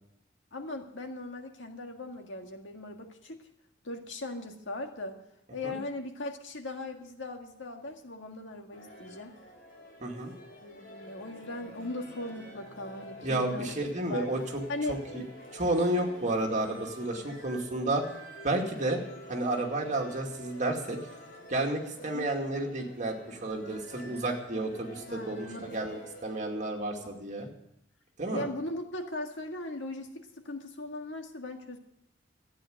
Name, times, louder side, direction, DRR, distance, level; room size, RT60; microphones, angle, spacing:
voice 1, 0.5-3.4 3.8-5.2 5.5-9.4 10.6-13.7 14.1-14.3 14.7-15.0 22.1-22.3 25.1-25.9 27.0-27.1 28.3-31.8, left 2 dB, 80° left, 4 dB, 1.8 m, -39 dB
sound 1, 8.7-26.4, equal, 55° left, 4.5 m, -48 dB
voice 2, 10.0-10.3 13.2-14.6 14.9-15.2 15.5-18.1 18.4-19.0 19.3-21.0 21.5-27.5 28.2-28.5, right 2 dB, 40° right, 1 dB, 2.4 m, -31 dB
14.0 x 9.2 x 7.8 m, 0.84 s
head